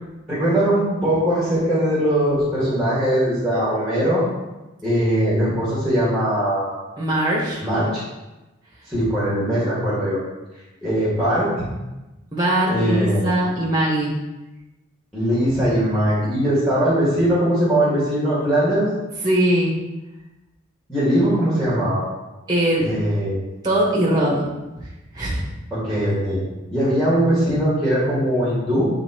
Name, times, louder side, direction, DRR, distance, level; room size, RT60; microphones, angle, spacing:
voice 1, 0.3-4.2 4.8-6.8 7.6-8.0 8.9-10.2 10.8-11.5 12.7-13.2 15.1-18.9 20.9-22.0 22.8-23.4 25.7-26.4 26.7-28.9, equal, ahead, -11 dB, 1.9 m, -20 dB
voice 2, 7.0-7.6 12.3-14.1 19.2-19.8 22.5-22.9 23.6-24.5 25.1-25.4, right 1 dB, 20° right, -5 dB, 1.3 m, -20 dB
9.3 x 3.8 x 3.0 m, 1.1 s
head